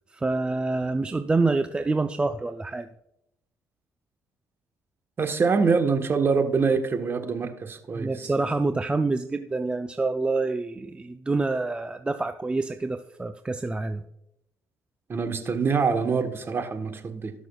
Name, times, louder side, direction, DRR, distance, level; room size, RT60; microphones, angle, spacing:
voice 1, 0.1-2.9 7.9-14.0, right 3 dB, 15° right, 8 dB, 0.4 m, -27 dB
voice 2, 5.2-8.3 15.1-17.3, right 5 dB, 40° right, 7 dB, 1.2 m, -25 dB
17.5 x 6.2 x 2.3 m, 0.83 s
supercardioid pair, 80°, 6 cm